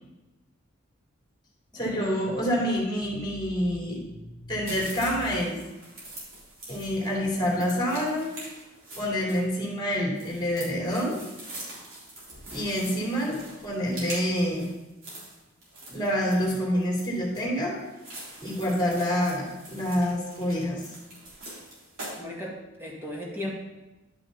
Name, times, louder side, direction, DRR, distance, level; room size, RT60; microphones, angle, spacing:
voice 1, 1.7-4.0 4.5-5.6 6.7-8.3 9.0-11.2 12.5-14.7 15.9-17.7 18.4-20.8, equal, 20° left, -3 dB, 2.7 m, -27 dB
sound 1, 4.6-22.2, right 1 dB, 75° right, 3.6 m, -43 dB
voice 2, 22.2-22.5 22.8-23.5, left 1 dB, 10° right, -3 dB, 1.9 m, -36 dB
11.0 x 5.8 x 4.0 m, 1.0 s
head